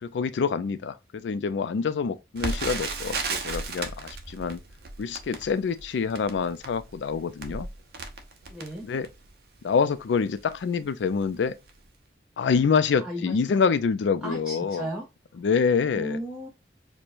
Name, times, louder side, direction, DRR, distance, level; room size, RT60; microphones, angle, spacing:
voice 1, 0.0-4.6 5.0-7.7 8.8-9.1 9.6-11.5 12.4-14.9 15.4-16.2, left 5 dB, 80° left, 0.4 m, -26 dB
Crackle, 2.4-9.3 9.9-10.0 10.3-10.6 11.2-11.4 11.7-11.8, right 3 dB, 55° right, 0.6 m, -35 dB
voice 2, 8.5-8.9 13.0-13.6 14.2-15.1 15.9-16.5, right 1 dB, 5° right, 0.5 m, -35 dB
4.4 x 2.1 x 2.4 m
head